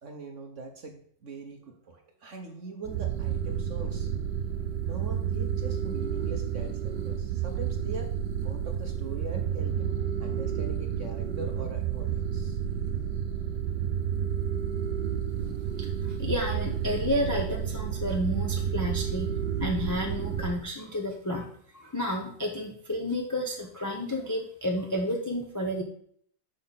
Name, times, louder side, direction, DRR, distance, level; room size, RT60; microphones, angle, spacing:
voice 1, 0.0-4.1 4.8-8.1 8.4-12.6 15.4-15.6, right 3 dB, 50° right, 4 dB, 1.0 m, -42 dB
sound 1, 2.8-20.6, right 8 dB, 70° right, 1.1 m, -30 dB
voice 2, 15.8-19.3 19.6-25.8, left 1 dB, 15° left, 0 dB, 0.6 m, -31 dB
6.5 x 6.3 x 5.6 m, 0.62 s
omnidirectional pair, 2.1 m